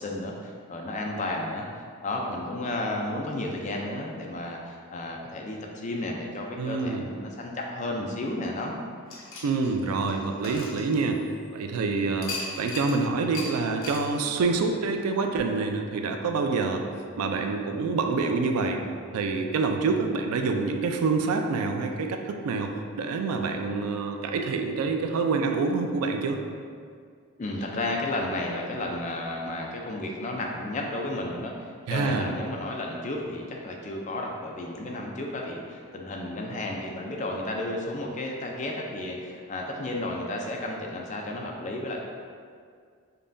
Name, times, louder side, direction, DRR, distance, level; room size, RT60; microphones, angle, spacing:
voice 1, 0.0-1.7 2.0-8.8 12.0-12.2 27.4-31.5 31.9-42.0, left 1 dB, 35° left, 0 dB, 0.3 m, -32 dB
voice 2, 6.6-7.1 9.4-11.2 11.5-16.8 17.2-18.8 19.1-26.4 31.9-32.3, right 4 dB, 85° right, 4 dB, 0.3 m, -27 dB
sound 1, 9.1-11.5 12.2-13.0 13.3-13.5 13.8-14.0, left 3 dB, 65° left, 0.7 m, -37 dB
5.3 x 2.2 x 2.6 m, 2.1 s
head